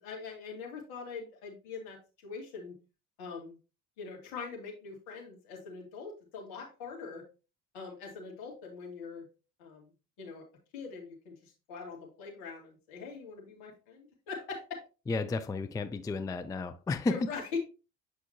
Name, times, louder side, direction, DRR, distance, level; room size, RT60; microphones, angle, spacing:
voice 1, 0.0-2.7 3.2-3.6 4.0-7.2 7.7-9.2 9.6-9.9 10.2-10.4 10.7-14.8 17.1-17.6, left 5 dB, 65° left, 2.8 m, -42 dB
voice 2, 15.1-17.2, left 3 dB, 10° left, 0.4 m, -32 dB
8.1 x 5.6 x 2.9 m
figure-of-eight pair, 55°, 42 cm